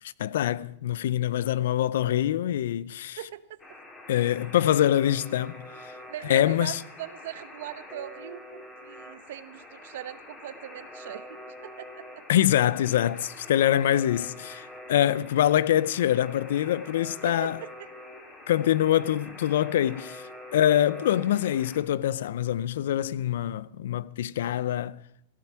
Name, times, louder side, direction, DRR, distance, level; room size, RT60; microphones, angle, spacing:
voice 1, 0.2-3.2 4.1-5.7 6.2-6.8 12.3-17.6 18.5-25.0, left 11 dB, 75° left, 0.5 m, -24 dB
voice 2, 3.2-3.6 6.1-12.2 17.2-17.7 20.3-20.4, right 12 dB, 70° right, 0.9 m, -40 dB
Alarm, 3.6-21.8, left 1 dB, 15° left, 2.8 m, -46 dB
16.5 x 11.0 x 6.0 m
supercardioid pair, 145°, 0 cm